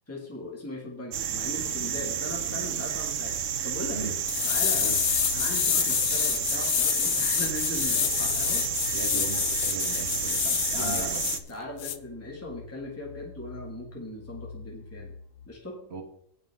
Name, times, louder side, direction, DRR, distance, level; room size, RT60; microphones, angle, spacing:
voice 1, 0.1-3.4 3.6-4.2 4.4-5.0 5.3-8.6 9.1-9.3 10.7-11.1 11.5-15.1 15.5-15.8, left 1 dB, 10° left, -3 dB, 2.1 m, -38 dB
sound 1, 1.1-11.4, right 8 dB, 70° right, 1.1 m, -31 dB
sound 2, 1.8-15.5, left 4 dB, 85° left, 1.7 m, -46 dB
sound 3, 4.3-11.4 11.8-12.0, left 10 dB, 60° left, 0.7 m, -27 dB
voice 2, 8.9-11.3 15.9-16.0, right 4 dB, 50° right, 3 dB, 1.7 m, -38 dB
17.5 x 5.8 x 3.6 m, 0.69 s
omnidirectional pair, 1.4 m